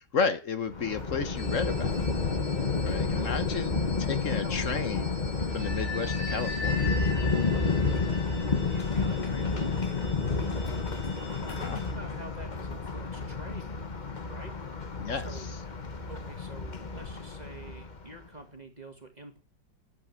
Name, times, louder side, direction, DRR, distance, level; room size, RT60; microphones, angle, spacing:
voice 1, 0.1-2.0 2.8-3.8 4.1-5.2 5.5-6.9 8.6-8.8 11.5-11.8 15.0-15.3, left 5 dB, 50° left, 1.2 m, -32 dB
Thunder, 0.7-18.1, left 4 dB, 30° left, 1.1 m, -30 dB
sound 1, 1.4-11.9, left 3 dB, 75° left, 5.3 m, -42 dB
voice 2, 3.1-3.6 4.3-5.0 5.8-5.9 7.2-7.8 8.7-10.5 11.0-13.9 14.3-14.6 15.1-15.5 16.1-19.4, right 1 dB, 20° right, 2.1 m, -48 dB
11.5 x 8.4 x 9.0 m
omnidirectional pair, 2.0 m